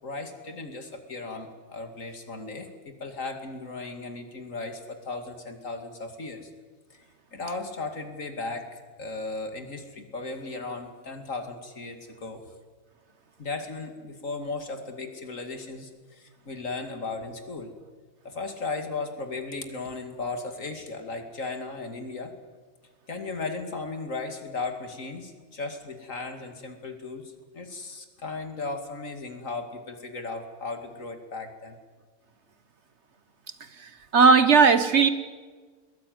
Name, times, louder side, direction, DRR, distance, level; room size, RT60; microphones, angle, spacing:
voice 1, 0.0-6.5 7.3-8.7 9.0-12.4 13.4-17.7 18.2-22.3 23.1-31.7, left 3 dB, 75° left, 6 dB, 2.8 m, -36 dB
voice 2, 34.1-35.1, right 5 dB, 55° right, 11 dB, 1.5 m, -16 dB
21.5 x 18.5 x 9.5 m, 1.4 s
omnidirectional pair, 1.4 m